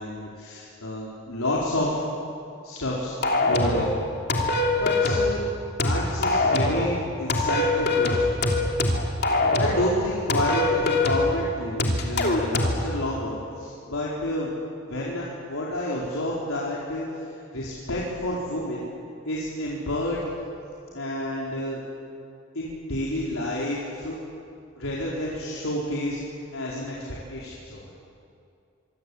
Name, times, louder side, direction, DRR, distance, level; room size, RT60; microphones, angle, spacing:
voice 1, 0.0-2.0 2.6-3.1 3.5-3.9 4.7-5.4 5.8-8.3 9.4-14.5 14.9-17.1 17.5-18.9 19.2-20.2 20.9-21.8 22.5-24.2 24.8-26.2 26.5-26.9 27.3-27.9, left 1 dB, 85° left, -5 dB, 4.6 m, -29 dB
sound 1, 3.2-3.9 4.3-5.3 5.8-6.9 7.3-9.9 10.3-11.3 11.8-12.8, left 2 dB, 50° left, 3.1 m, -23 dB
26.5 x 24.0 x 8.7 m, 2.5 s
head